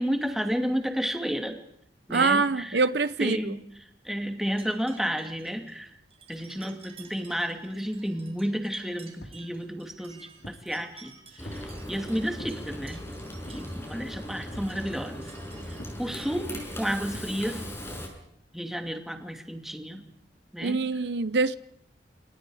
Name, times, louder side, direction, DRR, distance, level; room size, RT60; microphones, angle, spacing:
voice 1, 0.0-1.6 2.1-2.8 3.2-5.9 6.3-13.0 13.5-15.3 16.0-17.7 18.5-20.0 20.5-20.9, equal, ahead, 2.6 m, -32 dB
voice 2, 2.1-3.4 20.6-21.6, right 4 dB, 70° right, 0.9 m, -24 dB
sound 1, 4.5-16.3, right 5 dB, 35° right, 5.2 m, -54 dB
sound 2, 9.2-9.5 10.0-10.7 11.4-11.7 12.4-12.6 13.5-13.8 14.5-14.8 15.8-16.1 17.1-17.4, equal, 90° left, 4.2 m, -46 dB
Frying (food), 11.4-18.1, equal, 15° left, 6.7 m, -38 dB
28.5 x 27.0 x 5.0 m
head